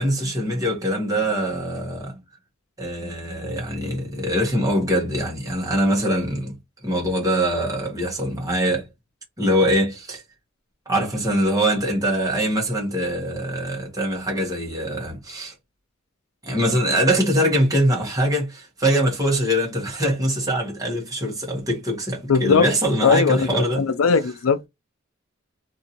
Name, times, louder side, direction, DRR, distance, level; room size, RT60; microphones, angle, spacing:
voice 1, 0.0-2.2 2.8-6.6 6.8-8.9 9.4-10.2 10.8-15.5 16.4-23.8, equal, 20° right, 1.6 m, -23 dB
voice 2, 22.3-22.7 23.0-24.7, left 5 dB, 90° left, 0.4 m, -19 dB
3.5 x 2.8 x 2.8 m
head